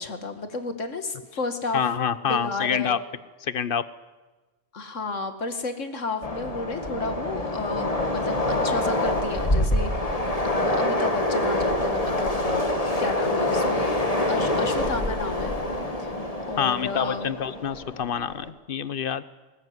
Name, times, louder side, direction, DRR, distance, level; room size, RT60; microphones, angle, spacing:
voice 1, 0.0-1.8 2.2-3.0 4.7-9.9 10.4-12.7 13.0-14.0 14.3-15.5 16.0-16.1 16.5-17.3, left 3 dB, 80° left, 8 dB, 2.3 m, -32 dB
voice 2, 1.7-3.0 3.4-3.8 16.6-19.2, left 8 dB, 50° left, 15 dB, 1.1 m, -26 dB
Train, 6.2-18.5, left 1 dB, 30° left, 2.1 m, -26 dB
20.0 x 19.5 x 9.6 m, 1.2 s
omnidirectional pair, 1.3 m